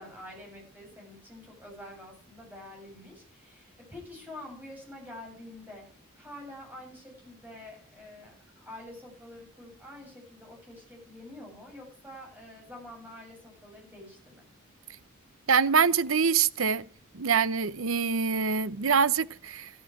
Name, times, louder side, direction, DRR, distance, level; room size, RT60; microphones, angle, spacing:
voice 1, 0.0-5.8 6.1-14.5, left 1 dB, 10° right, 7.8 m, -47 dB
voice 2, 15.5-16.8 17.1-19.7, right 6 dB, 80° right, 0.8 m, -25 dB
14.0 x 13.5 x 4.8 m
head